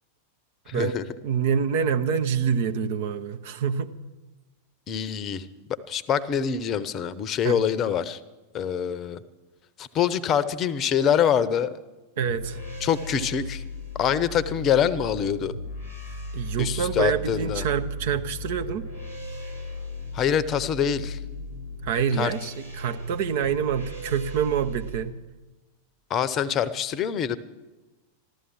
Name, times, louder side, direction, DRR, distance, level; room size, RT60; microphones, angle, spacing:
voice 1, 0.7-1.0 4.9-5.5 5.9-8.2 8.5-9.2 9.8-11.8 12.8-13.6 14.0-15.5 16.6-17.7 20.1-21.2 22.2-22.3 26.1-27.4, left 8 dB, 30° left, 0.8 m, -25 dB
voice 2, 1.2-3.9 7.4-7.6 12.2-12.6 16.3-18.9 21.8-25.2, right 7 dB, 50° right, 0.9 m, -26 dB
sound 1, 12.2-25.0, left 1 dB, 80° right, 3.2 m, -36 dB
14.5 x 13.0 x 7.5 m
figure-of-eight pair, 90°, 0 cm